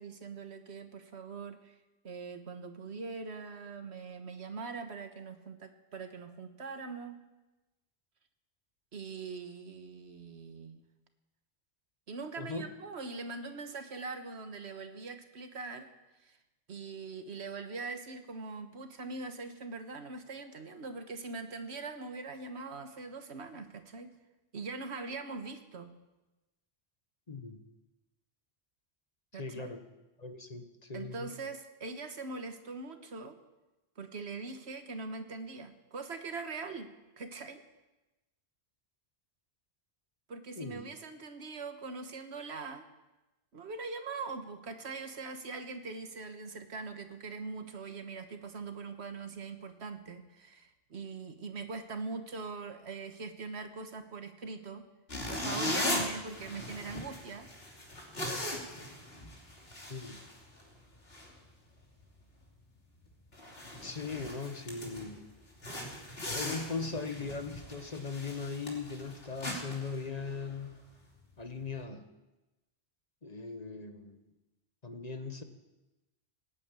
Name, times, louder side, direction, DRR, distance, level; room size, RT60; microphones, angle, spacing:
voice 1, 0.0-1.7 2.0-7.2 8.9-10.8 12.1-15.9 16.2-16.4 16.7-24.1 24.5-25.9 29.3-29.7 30.9-33.4 34.0-36.9 37.2-37.6 40.3-42.9 43.5-54.8 55.3-57.5, right 4 dB, 85° right, 8 dB, 1.6 m, -42 dB
voice 2, 12.4-12.7 27.3-27.6 29.3-29.8 30.2-31.3 40.6-40.9 59.9-60.2 63.8-65.3 66.3-70.8 71.4-72.1 73.2-74.2 74.8-75.4, left 4 dB, 40° left, 7 dB, 1.3 m, -39 dB
sound 1, 55.1-60.8 61.1-61.3 61.8-62.0 62.4-62.5 63.0-63.1 63.3-65.1 65.6-70.6, left 1 dB, 65° left, 3.2 m, -39 dB
18.0 x 8.7 x 9.0 m, 1.1 s
omnidirectional pair, 1.1 m